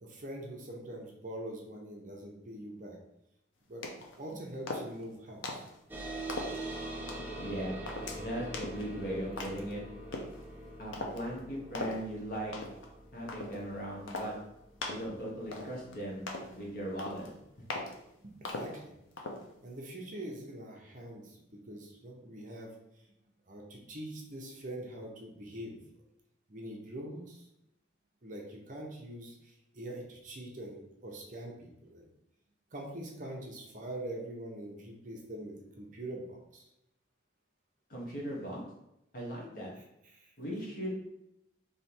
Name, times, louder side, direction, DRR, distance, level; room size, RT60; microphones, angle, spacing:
voice 1, 0.0-3.0 3.7-3.9 4.2-5.7 18.2-18.9 19.6-22.7 23.5-25.8 26.5-27.4 28.2-32.1 32.7-36.6 40.1-40.2, right 1 dB, 40° right, 0 dB, 0.9 m, -43 dB
sound 1, 3.8-4.2 4.7-5.0 5.4-5.8 6.3-6.6 7.1-7.4 7.9-8.2 8.5-8.8 9.4-9.7 10.1-10.4 10.9-11.2 11.7-12.0 12.5-12.9 13.3-13.6 14.1-14.3 14.8-15.1 15.5-15.9 16.3-16.5 17.0-17.3 17.7-18.0 18.4-18.8 19.2-19.4, left 2 dB, 85° left, 0.8 m, -39 dB
sound 2, 5.9-16.8, right 1 dB, 10° right, 0.5 m, -44 dB
voice 2, 7.4-9.8 10.8-12.5 13.1-14.3 14.9-16.2 16.5-17.3 37.9-38.6 39.1-39.7 40.4-40.9, right 1 dB, 45° left, -3 dB, 1.4 m, -38 dB
3.4 x 3.4 x 4.4 m, 0.83 s
head